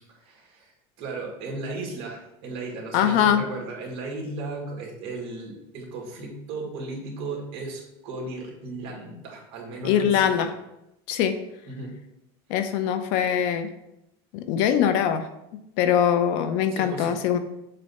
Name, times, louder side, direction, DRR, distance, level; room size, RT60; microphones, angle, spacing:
voice 1, 0.1-0.7 1.0-10.5 11.7-12.0 16.7-17.1, right 3 dB, 45° right, -1 dB, 2.0 m, -35 dB
voice 2, 2.9-3.4 9.8-10.5 11.1-11.4 12.5-13.7 14.3-15.3 15.8-17.4, left 9 dB, 60° left, 9 dB, 0.6 m, -22 dB
7.5 x 2.7 x 5.6 m, 0.85 s
supercardioid pair, 155°, 13 cm